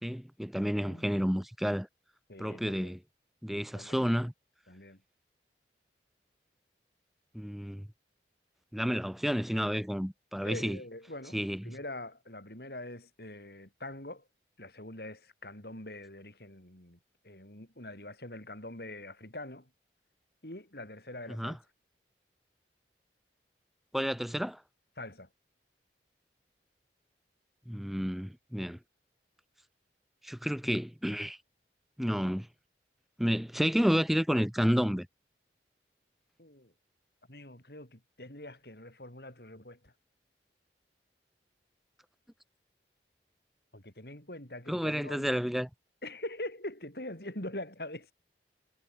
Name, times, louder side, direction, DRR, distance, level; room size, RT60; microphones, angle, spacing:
voice 1, 0.0-1.9 2.4-3.0 3.4-4.3 7.3-7.9 8.7-10.8 11.3-11.7 21.3-21.6 23.9-24.6 27.7-28.8 30.2-31.4 32.0-32.5 33.2-35.1 44.7-45.7, equal, ahead, 0.3 m, -30 dB
voice 2, 2.3-3.0 3.7-4.0 4.7-5.0 10.4-14.3 14.6-17.0 17.2-19.7 20.4-21.6 25.0-25.3 36.4-36.7 37.3-39.9 43.7-45.4 46.0-48.1, left 1 dB, 60° left, 5.4 m, -44 dB
head